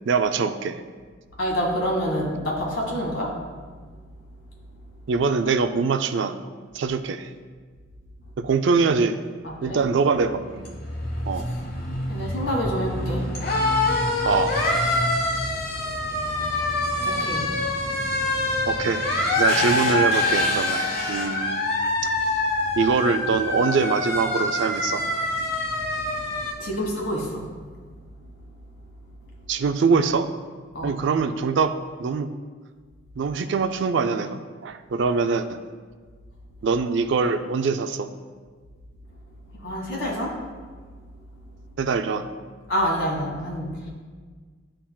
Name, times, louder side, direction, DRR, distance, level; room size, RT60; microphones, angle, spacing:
voice 1, 0.1-0.8 5.1-6.4 6.7-7.3 8.4-9.2 9.6-10.8 11.3-11.5 14.2-14.6 18.7-19.1 19.4-20.8 21.1-21.7 22.8-25.0 29.5-30.3 30.8-31.7 32.0-32.3 33.2-35.6 36.6-38.1 41.8-42.3, right 5 dB, 65° right, 9 dB, 0.4 m, -23 dB
voice 2, 1.4-3.3 9.4-9.8 12.1-13.3 17.0-17.4 26.6-27.5 30.7-31.0 39.5-40.4 42.7-43.9, equal, 80° left, -2 dB, 1.6 m, -27 dB
sound 1, 10.1-26.5, left 2 dB, 55° left, 1.1 m, -25 dB
11.0 x 3.8 x 2.3 m, 1.5 s
head